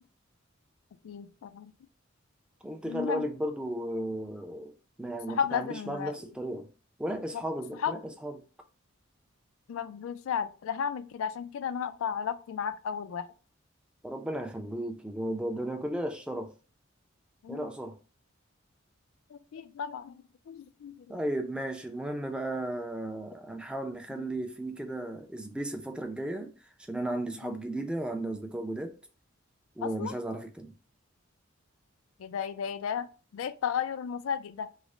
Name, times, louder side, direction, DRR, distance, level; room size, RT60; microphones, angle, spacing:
voice 1, 1.0-1.7 2.8-3.3 5.3-6.2 7.3-7.4 7.7-8.0 9.7-13.3 17.4-17.7 19.3-21.1 24.1-24.2 27.4-27.6 29.8-30.2 32.2-34.7, left 7 dB, 75° left, 0.3 m, -34 dB
voice 2, 2.6-4.7 5.0-6.7 7.0-8.4 14.0-16.5 17.5-18.0 21.1-26.5 26.9-29.0 29.8-30.7, right 1 dB, 5° right, 0.4 m, -34 dB
3.2 x 2.0 x 3.6 m
head